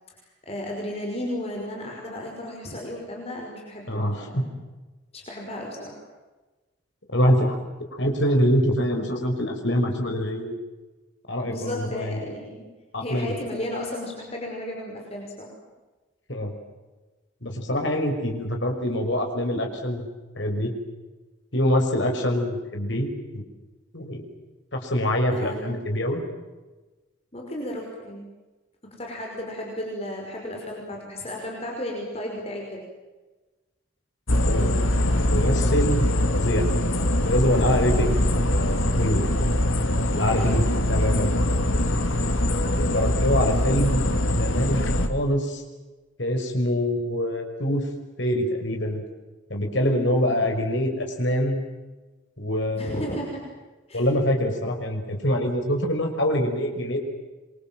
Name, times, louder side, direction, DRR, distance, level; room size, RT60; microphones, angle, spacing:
voice 1, 0.4-4.5 5.1-6.0 11.5-12.7 13.0-15.5 22.2-22.3 25.3-25.7 27.3-28.3 28.8-32.8 37.6-37.8 40.1-40.5 50.2-50.3 52.7-53.4 53.9-54.0, left 1 dB, 30° left, -1 dB, 5.6 m, -34 dB
voice 2, 3.9-4.4 7.1-7.6 8.0-10.5 11.3-12.2 12.9-13.4 16.3-16.5 17.4-20.0 20.4-20.7 21.5-23.4 23.9-24.2 24.7-26.2 34.5-34.7 35.3-36.1 36.3-36.7 37.2-39.3 40.1-41.3 42.6-44.8 45.1-45.6 46.2-47.8 48.2-49.0 49.5-51.6 52.4-53.1 53.9-57.0, equal, 60° left, 2 dB, 5.8 m, -25 dB
sound 1, 34.3-45.1, left 1 dB, 80° left, 2.8 m, -23 dB
27.5 x 24.0 x 7.7 m, 1.2 s
head